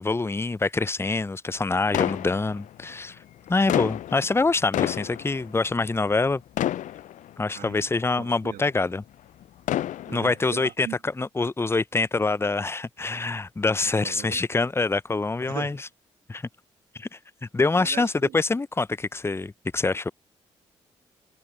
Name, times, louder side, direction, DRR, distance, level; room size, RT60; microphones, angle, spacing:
voice 1, 0.0-3.2 3.5-6.4 7.4-9.0 10.1-15.8 16.3-16.4 17.0-20.1, left 3 dB, 15° left, 0.6 m, -25 dB
sound 1, 1.9-2.9 3.5-6.3 6.6-7.6 8.3-8.4 9.4-10.5, left 12 dB, 60° left, 0.4 m, -29 dB
voice 2, 7.5-7.9 8.2-8.7 10.1-11.0 13.8-14.4 15.5-15.8 17.8-18.4, right 13 dB, 75° right, 1.7 m, -39 dB
hypercardioid pair, 40°, 15 cm